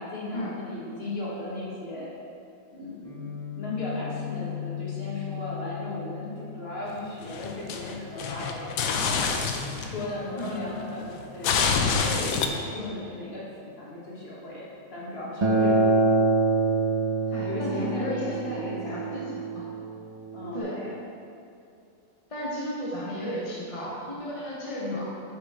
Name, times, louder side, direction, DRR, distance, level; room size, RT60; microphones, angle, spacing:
voice 1, 0.0-2.1 2.7-9.4 9.7-14.6 14.9-15.9 17.4-19.4 20.3-21.0 24.8-25.0, left 2 dB, 45° left, -7 dB, 1.8 m, -36 dB
Guitar, 3.0-10.9, left 10 dB, 65° right, 2.4 m, -39 dB
sound 1, 7.0-10.0 10.4-12.5, left 5 dB, 80° left, 1.1 m, -27 dB
Acoustic guitar, 15.4-20.6, right 2 dB, 50° right, 0.3 m, -25 dB
voice 2, 17.3-19.2 19.5-19.6 20.5-20.7 22.3-25.0, equal, 25° left, -6 dB, 0.9 m, -33 dB
7.1 x 6.5 x 3.5 m, 2.5 s
omnidirectional pair, 1.5 m